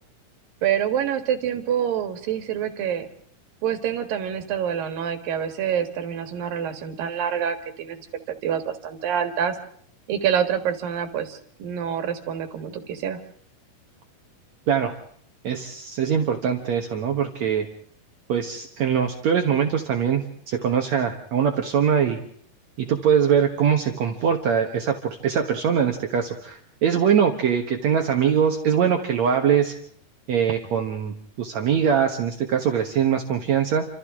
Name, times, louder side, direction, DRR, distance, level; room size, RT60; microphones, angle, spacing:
voice 1, 0.6-3.1 3.6-9.6 10.1-13.2, right 8 dB, 80° right, 7 dB, 3.5 m, -26 dB
voice 2, 15.4-17.7 18.3-22.2 22.8-29.7 30.3-33.9, right 7 dB, 60° right, 4 dB, 2.3 m, -22 dB
29.0 x 26.5 x 3.7 m, 0.63 s
omnidirectional pair, 4.0 m